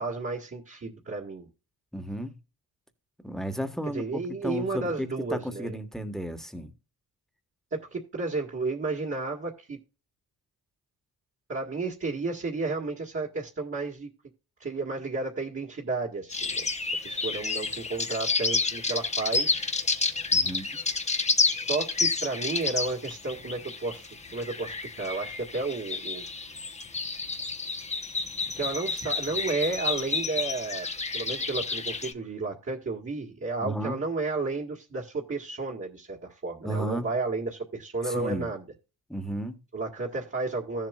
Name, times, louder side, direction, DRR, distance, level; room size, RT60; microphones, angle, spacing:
voice 1, 0.0-1.5 3.9-5.8 7.7-9.8 11.5-14.1 14.6-16.7 17.0-20.0 21.4-26.3 28.5-30.9 31.1-38.6 39.7-40.9, right 3 dB, 35° right, 1.9 m, -32 dB
voice 2, 1.9-2.4 3.2-6.7 20.3-20.7 33.6-34.0 36.6-37.1 38.0-38.5 39.1-39.6, right 1 dB, ahead, 1.4 m, -33 dB
sound 1, 16.3-32.1, left 4 dB, 20° left, 1.0 m, -30 dB
15.0 x 7.4 x 2.4 m
cardioid pair, 100°, 37 cm